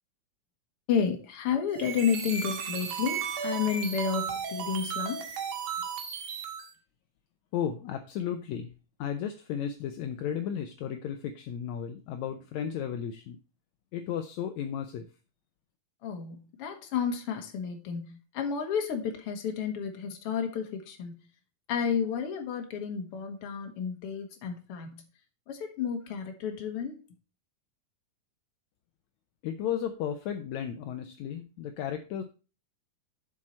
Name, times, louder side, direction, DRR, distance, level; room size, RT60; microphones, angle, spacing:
voice 1, 0.9-5.2 16.0-21.1 21.7-25.0 25.5-27.0, left 7 dB, 55° left, 4 dB, 2.2 m, -31 dB
sound 1, 1.7-6.7, right 7 dB, 85° right, 2.8 m, -35 dB
voice 2, 7.5-8.7 9.0-13.4 13.9-15.1 29.4-32.2, left 9 dB, 75° left, 6 dB, 2.0 m, -34 dB
7.5 x 6.4 x 4.3 m, 0.33 s
omnidirectional pair, 3.5 m